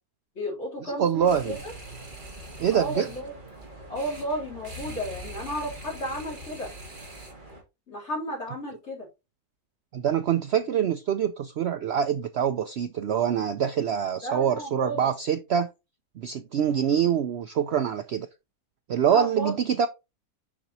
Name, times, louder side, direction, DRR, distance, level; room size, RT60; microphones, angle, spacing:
voice 1, 0.4-1.7 2.7-3.3 3.9-6.7 7.9-9.1 14.2-15.1 19.1-19.6, equal, 45° left, 3.6 m, -33 dB
voice 2, 0.9-1.6 2.6-3.1 9.9-15.7 16.2-18.3 18.9-19.9, right 8 dB, 80° right, 0.5 m, -25 dB
sound 1, 1.1-7.6, right 1 dB, 30° right, 2.2 m, -42 dB
7.1 x 5.9 x 2.8 m
omnidirectional pair, 1.7 m